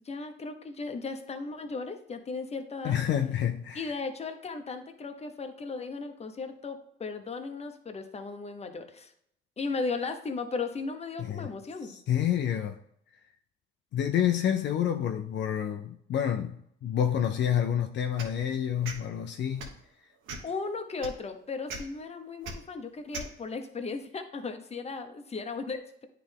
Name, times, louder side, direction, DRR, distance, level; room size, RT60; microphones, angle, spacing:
voice 1, 0.0-3.0 3.7-9.1 9.6-12.0 20.4-26.1, left 4 dB, 30° left, 0.9 m, -36 dB
voice 2, 2.8-3.9 11.2-11.5 11.8-12.8 13.9-19.7, left 9 dB, 65° left, 0.5 m, -28 dB
sound 1, 18.2-18.4 18.8-19.0 19.5-19.8 20.3-20.5 21.0-21.1 21.7-21.8 22.4-22.5 23.1-23.3, right 3 dB, 90° right, 1.1 m, -38 dB
9.4 x 3.4 x 3.6 m
cardioid pair, 90°, 20 cm